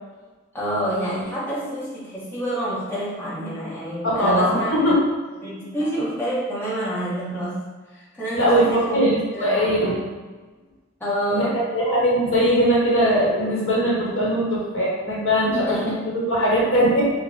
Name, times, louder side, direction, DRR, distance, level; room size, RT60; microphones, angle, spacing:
voice 1, 0.5-4.9 5.4-7.6 7.9-9.0 9.3-9.7 11.0-11.6 15.5-16.0, right 1 dB, 10° left, -9 dB, 1.0 m, -27 dB
voice 2, 4.0-5.0 8.3-10.0 11.3-17.1, equal, 80° left, -5 dB, 1.2 m, -20 dB
4.8 x 2.2 x 3.2 m, 1.3 s
head